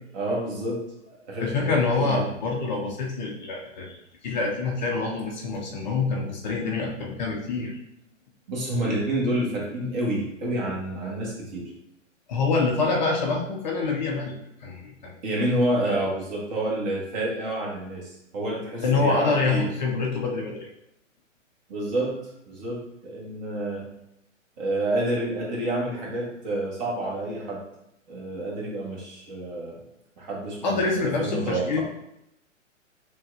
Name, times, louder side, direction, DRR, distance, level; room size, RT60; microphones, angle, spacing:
voice 1, 0.1-2.3 8.5-11.7 15.2-19.6 21.7-22.2 22.5-23.8 24.6-27.6 28.1-29.8 30.2-31.8, right 1 dB, 35° right, -3 dB, 1.2 m, -29 dB
voice 2, 1.4-7.7 12.3-14.3 14.6-15.1 18.8-20.7 30.6-31.8, left 3 dB, 35° left, -1 dB, 0.6 m, -26 dB
5.9 x 2.3 x 2.5 m, 0.81 s
figure-of-eight pair, 125°, 39 cm